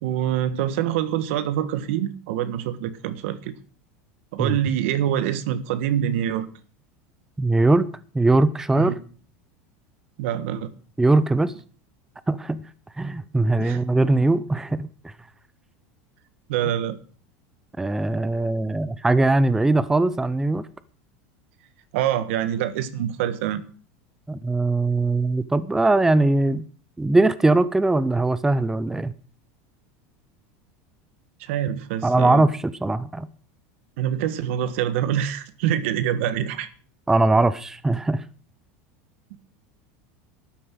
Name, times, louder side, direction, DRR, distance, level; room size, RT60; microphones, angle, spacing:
voice 1, 0.0-3.5 4.3-6.5 8.8-9.0 10.2-10.7 13.6-13.8 16.5-17.0 21.9-23.6 31.4-32.4 34.0-36.7 39.3-39.4, right 10 dB, 70° right, 1.4 m, -25 dB
voice 2, 7.4-7.9 8.1-8.9 11.0-11.5 12.3-12.6 13.0-14.9 17.8-20.7 24.3-26.7 27.0-29.1 32.0-33.3 37.1-38.2, right 2 dB, 5° right, 0.6 m, -20 dB
12.5 x 9.8 x 6.2 m
supercardioid pair, 140°, 7 cm